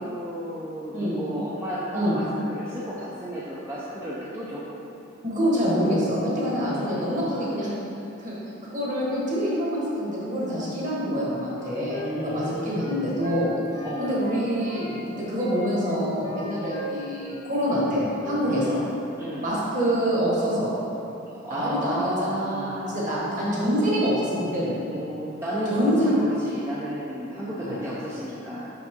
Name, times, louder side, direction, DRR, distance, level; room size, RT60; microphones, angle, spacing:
voice 1, 0.0-4.6 6.6-7.3 11.9-12.9 13.8-14.1 18.5-18.8 19.2-19.5 21.4-23.1 24.9-28.7, equal, 15° right, -8 dB, 0.6 m, -33 dB
voice 2, 5.2-7.7 8.2-8.4 8.6-13.5 14.0-18.8 19.4-20.7 21.5-24.8 25.7-26.1 27.6-27.8, equal, 40° right, -6 dB, 1.5 m, -26 dB
Wind instrument woodwind instrument, 11.4-14.9 15.3-17.4 17.7-17.9 18.2-18.4 18.7-18.9, right 1 dB, 25° left, 0.9 m, -38 dB
6.0 x 5.6 x 3.7 m, 2.8 s
head